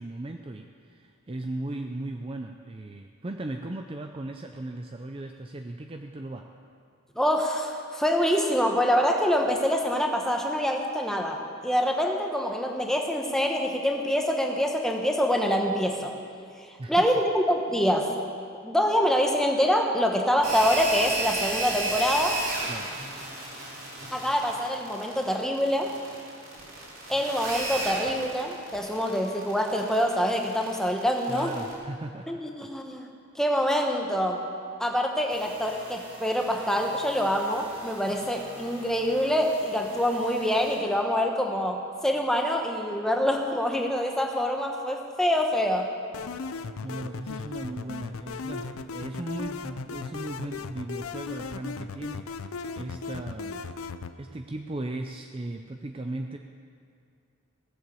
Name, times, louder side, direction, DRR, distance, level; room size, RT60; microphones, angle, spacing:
voice 1, 0.0-6.5 16.8-17.1 22.7-22.9 31.3-32.3 32.6-32.7 46.8-53.6 54.2-56.4, right 2 dB, 25° right, 4 dB, 0.4 m, -37 dB
voice 2, 7.2-11.4 11.6-16.1 16.6-18.1 18.6-22.4 24.1-25.9 27.1-31.6 32.3-33.1 33.3-34.4 34.8-45.9, equal, ahead, 2 dB, 1.0 m, -25 dB
sound 1, 20.4-31.7, right 2 dB, 65° right, 3.9 m, -33 dB
sound 2, 35.3-40.8, right 1 dB, 40° right, 2.6 m, -46 dB
sound 3, 46.1-54.1, left 4 dB, 80° left, 0.5 m, -37 dB
17.0 x 7.6 x 6.9 m, 2.3 s
head